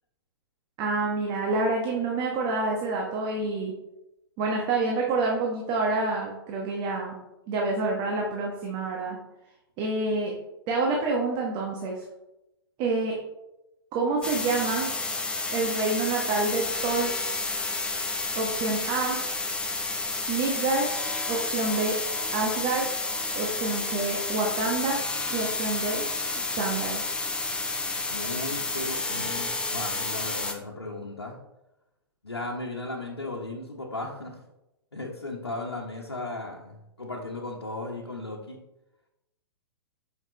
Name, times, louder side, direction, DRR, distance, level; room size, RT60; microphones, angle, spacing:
voice 1, 0.8-3.7 4.4-7.1 7.5-9.2 9.8-10.3 10.7-12.0 12.8-13.2 13.9-14.9 15.5-17.1 18.4-19.2 20.3-20.9 21.3-22.0 22.3-22.9 23.3-25.0 25.3-26.1 26.5-27.0, right 3 dB, 35° right, -1 dB, 1.4 m, -27 dB
sound 1, 14.2-30.5, left 3 dB, 5° left, 0.8 m, -30 dB
voice 2, 28.1-31.4 32.2-34.4 34.9-38.6, left 2 dB, 85° left, -2 dB, 1.1 m, -36 dB
9.1 x 5.8 x 3.2 m, 0.94 s
figure-of-eight pair, 110°, 13 cm